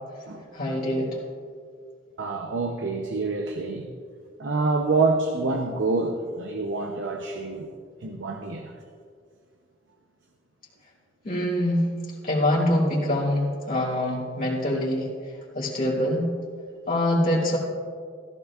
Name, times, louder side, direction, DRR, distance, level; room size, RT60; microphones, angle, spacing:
voice 1, 0.5-1.2 11.2-11.9 12.2-16.3 16.9-17.6, left 1 dB, 50° left, -6 dB, 2.6 m, -24 dB
voice 2, 2.2-3.9 4.4-7.7 8.0-8.7, right 3 dB, 70° right, 3 dB, 0.7 m, -27 dB
16.0 x 15.0 x 2.4 m, 2.2 s
head